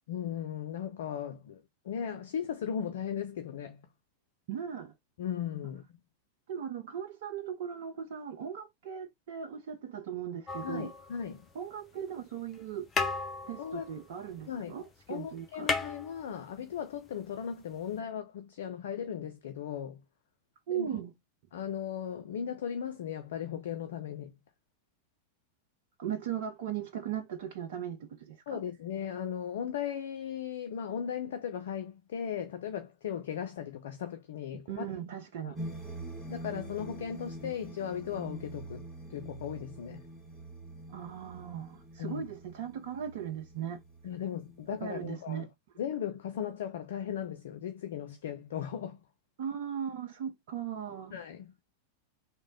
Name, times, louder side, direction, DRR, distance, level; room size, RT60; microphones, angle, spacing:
voice 1, 0.1-3.8 5.2-5.8 10.6-11.4 13.6-13.9 14.5-14.8 15.1-20.0 20.7-20.9 21.5-24.3 28.5-34.9 35.4-35.5 36.3-40.0 42.0-42.2 44.0-45.5 45.8-49.0 51.1-51.5, left 8 dB, 60° left, 0.4 m, -37 dB
voice 2, 4.5-4.9 6.5-10.9 11.5-12.9 13.5-15.7 20.7-21.1 26.0-28.6 34.7-35.6 40.9-43.8 44.8-45.5 49.4-51.1, right 9 dB, 55° right, 0.5 m, -38 dB
sound 1, 10.5-11.6 12.5-12.6 12.9-14.8 15.1-15.2 15.4-16.8 17.9-18.0, left 4 dB, 20° left, 0.6 m, -35 dB
sound 2, 35.6-45.1, right 1 dB, 10° right, 1.7 m, -45 dB
3.1 x 2.1 x 3.7 m
figure-of-eight pair, 90°, 0 cm